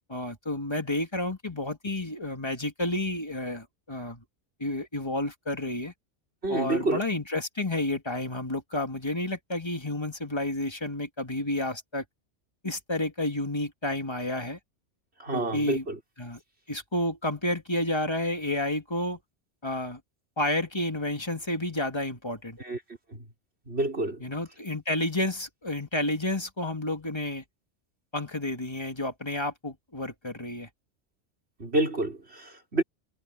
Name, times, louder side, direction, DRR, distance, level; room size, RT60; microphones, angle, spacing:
voice 1, 0.1-4.2 4.6-5.9 6.5-12.0 12.6-14.6 15.3-15.9 16.2-16.4 16.7-19.2 19.6-20.0 20.4-22.6 24.2-27.4 28.1-30.7, left 1 dB, 20° left, 2.6 m, -30 dB
voice 2, 6.4-7.0 15.2-16.0 22.6-22.8 23.1-23.2 23.7-24.2 31.6-32.8, right 2 dB, 60° right, 5.2 m, -28 dB
omnidirectional pair, 1.2 m